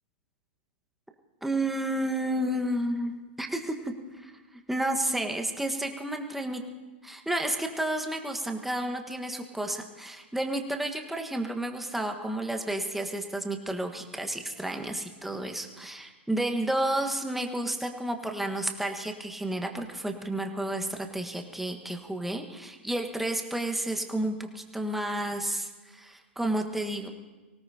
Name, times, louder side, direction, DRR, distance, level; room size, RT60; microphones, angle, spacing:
voice 1, 1.4-6.6 7.0-27.1, right 1 dB, 5° right, 4 dB, 1.5 m, -31 dB
24.5 x 17.5 x 2.9 m, 1.3 s
hypercardioid pair, 110°, 6 cm